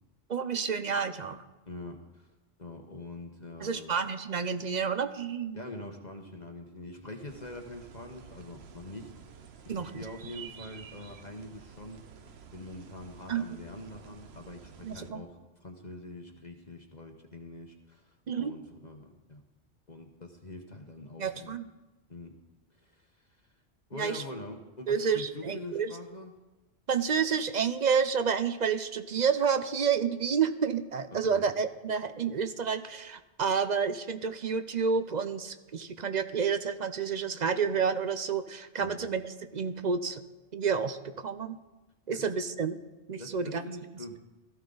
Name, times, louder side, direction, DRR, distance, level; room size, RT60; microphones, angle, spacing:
voice 1, 0.3-1.4 3.6-5.6 9.7-9.9 13.3-13.4 14.8-15.2 18.3-18.5 21.2-21.6 23.9-24.2 24.9-25.9 26.9-40.2 40.5-41.6 42.1-42.8 43.1-43.6, right 6 dB, 45° right, 9 dB, 0.7 m, -29 dB
voice 2, 1.7-2.3 2.6-3.9 5.5-19.4 19.9-21.5 22.1-22.3 22.8-23.3 23.9-26.3 31.1-31.5 38.8-39.1 42.1-42.3 43.2-44.2, left 2 dB, 40° left, 3 dB, 1.2 m, -44 dB
sound 1, 7.3-15.1, right 7 dB, 65° right, 1.1 m, -51 dB
16.5 x 14.5 x 3.9 m, 1.1 s
omnidirectional pair, 1.2 m